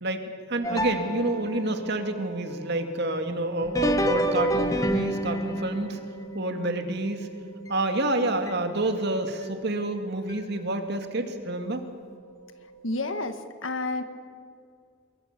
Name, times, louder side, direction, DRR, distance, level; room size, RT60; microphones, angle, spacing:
voice 1, 0.5-6.0 6.3-7.3 7.7-11.8, right 2 dB, 55° right, 6 dB, 2.4 m, -28 dB
sound 1, 0.6-13.0, right 2 dB, 35° left, 7.0 m, -45 dB
sound 2, 0.6-1.8 3.6-8.0 8.5-8.6 9.4-9.5 10.3-10.4, equal, 15° left, 1.3 m, -29 dB
voice 2, 12.8-13.4 13.6-14.0, left 2 dB, 70° left, 8 dB, 1.8 m, -29 dB
26.5 x 22.0 x 6.9 m, 2.2 s
head